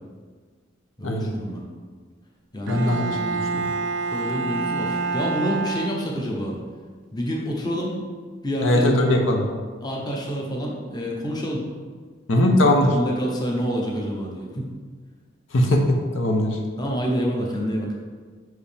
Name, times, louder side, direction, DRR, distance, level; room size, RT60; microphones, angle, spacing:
voice 1, 1.0-1.6 2.5-3.0 4.1-6.5 7.1-8.0 8.4-8.9 9.8-11.6 12.4-12.5 12.8-14.7 16.8-17.9, equal, 20° left, -1 dB, 0.8 m, -27 dB
voice 2, 2.7-3.7 8.6-9.5 12.3-12.9 15.5-16.6, left 1 dB, 85° left, 2 dB, 0.7 m, -20 dB
Bowed string instrument, 2.7-6.4, right 4 dB, 70° right, 0.4 m, -27 dB
5.8 x 4.7 x 3.5 m, 1.5 s
head